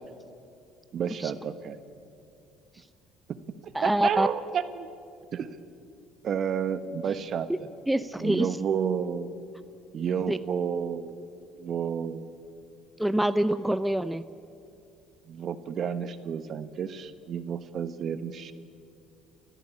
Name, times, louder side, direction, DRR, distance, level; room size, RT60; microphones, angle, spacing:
voice 1, 0.9-1.8 3.3-3.4 3.6-4.9 5.3-5.6 6.2-7.7 8.2-9.3 9.9-11.2 11.6-12.3 15.3-18.5, right 7 dB, 50° right, 11 dB, 1.4 m, -31 dB
voice 2, 3.7-4.3 7.9-8.5 10.3-10.4 13.0-14.2, right 1 dB, 5° right, 12 dB, 0.7 m, -25 dB
29.0 x 14.0 x 8.7 m, 2.5 s
supercardioid pair, 85°, 0 cm